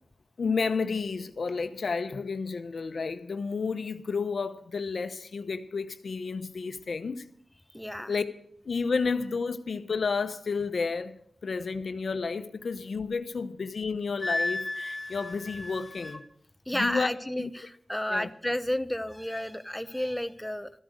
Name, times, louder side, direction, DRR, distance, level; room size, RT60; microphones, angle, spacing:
voice 1, 0.4-7.2 8.1-8.2 8.6-16.2 16.7-17.1 17.4-17.5 18.1-18.3, left 4 dB, 70° left, 0.9 m, -31 dB
voice 2, 7.7-8.1 16.7-20.7, left 1 dB, 5° left, 0.8 m, -31 dB
Wind instrument woodwind instrument, 14.2-16.2, left 2 dB, 25° left, 2.1 m, -33 dB
14.0 x 10.0 x 6.5 m
cardioid pair, 55°, 0 cm